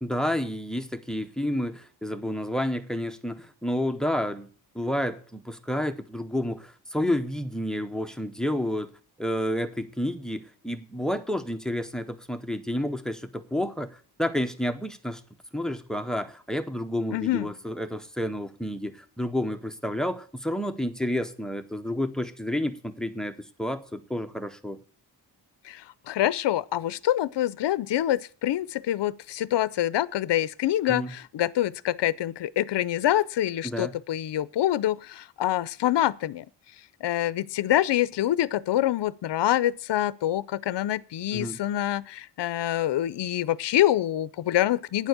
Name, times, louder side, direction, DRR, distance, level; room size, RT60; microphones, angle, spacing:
voice 1, 0.0-4.5 4.7-8.9 9.2-15.2 15.5-24.8 30.9-31.1 33.6-33.9 41.3-41.6, equal, ahead, 0.6 m, -30 dB
voice 2, 17.1-17.5 25.6-36.5 37.0-45.1, left 13 dB, 70° left, 0.5 m, -26 dB
9.5 x 7.0 x 7.9 m
wide cardioid pair, 170°, 43 cm